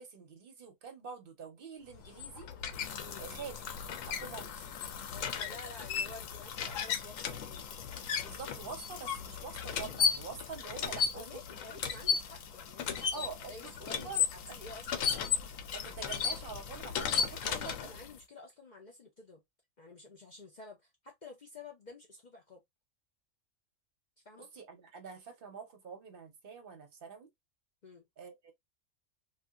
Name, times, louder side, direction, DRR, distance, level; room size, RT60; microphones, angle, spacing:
voice 1, 0.0-2.5 3.2-3.5 4.1-4.8 8.2-11.6 13.1-14.2 14.5-14.6 15.7-17.9 24.4-27.3 28.2-28.5, right 5 dB, 50° right, 0.9 m, -46 dB
sound 1, 1.9-18.2, left 7 dB, 80° left, 0.9 m, -35 dB
voice 2, 5.1-7.9 10.9-15.1 17.4-19.4 19.8-22.6 24.2-24.5 27.8-28.1, left 2 dB, 50° left, 0.6 m, -51 dB
2.7 x 2.4 x 2.3 m
omnidirectional pair, 1.4 m